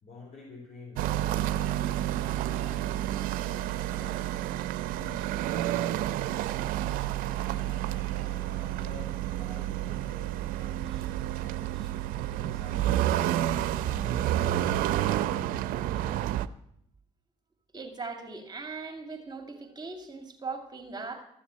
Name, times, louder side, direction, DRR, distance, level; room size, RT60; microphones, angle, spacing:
voice 1, 0.0-4.3 5.0-6.5 7.3-11.9 12.3-13.2 13.8-16.3, left 3 dB, 55° left, -2 dB, 4.0 m, -49 dB
sound 1, 1.0-16.5, right 13 dB, 85° right, 0.5 m, -30 dB
voice 2, 17.7-21.2, right 4 dB, 30° right, 4 dB, 2.6 m, -39 dB
14.0 x 7.2 x 8.8 m, 0.73 s
supercardioid pair, 65°, 14 cm